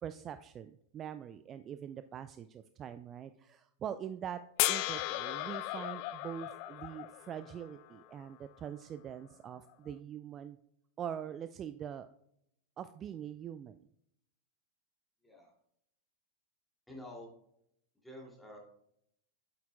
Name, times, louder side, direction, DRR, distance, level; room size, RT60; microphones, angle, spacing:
voice 1, 0.0-4.4 4.7-10.6 11.0-12.1 12.8-13.8, right 9 dB, 30° right, 11 dB, 0.3 m, -43 dB
sound 1, 4.6-7.8 9.9-10.0, left 17 dB, 45° left, 0.4 m, -35 dB
voice 2, 15.2-15.5 16.9-17.3 17.9-18.6, left 1 dB, 5° left, -1 dB, 2.5 m, -49 dB
8.4 x 7.9 x 2.2 m, 0.73 s
figure-of-eight pair, 90°, 0 cm